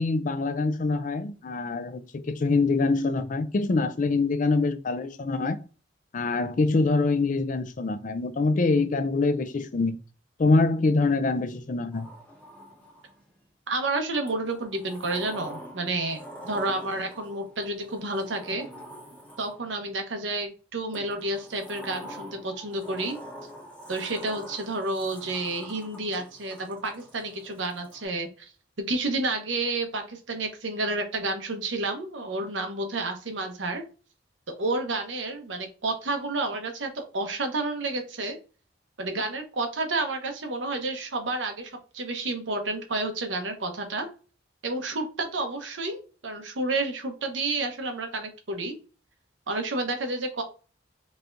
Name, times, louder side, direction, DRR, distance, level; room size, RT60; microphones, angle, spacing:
voice 1, 0.0-5.6 6.1-10.0 10.4-12.1, left 3 dB, 45° left, 0.4 m, -25 dB
Sliding door, 11.9-13.3 14.3-19.8 20.9-28.0, equal, 10° left, 0.9 m, -45 dB
voice 2, 13.7-18.7 19.4-23.2 23.9-28.5 28.8-33.8 34.5-38.4 39.0-44.1 44.6-48.8 49.5-50.4, right 2 dB, 85° right, 0.9 m, -30 dB
4.2 x 3.4 x 2.6 m
head